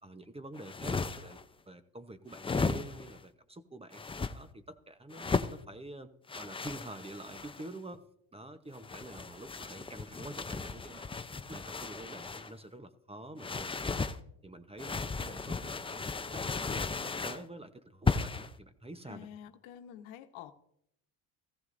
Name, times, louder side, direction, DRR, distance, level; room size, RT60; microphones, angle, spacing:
voice 1, 0.0-1.4 1.7-4.0 4.3-8.0 8.3-11.2 11.5-14.0 14.4-19.3, right 1 dB, 10° right, 10 dB, 0.9 m, -47 dB
sound 1, 0.5-1.4 2.3-3.2 3.9-4.3 5.1-5.6 6.3-7.7 8.7-12.5 13.4-14.2 14.8-17.4 18.1-18.5, left 4 dB, 10° left, 0.5 m, -35 dB
voice 2, 19.1-20.5, left 10 dB, 75° left, 8 dB, 1.1 m, -48 dB
16.0 x 14.5 x 2.6 m, 0.74 s
supercardioid pair, 90°, 48 cm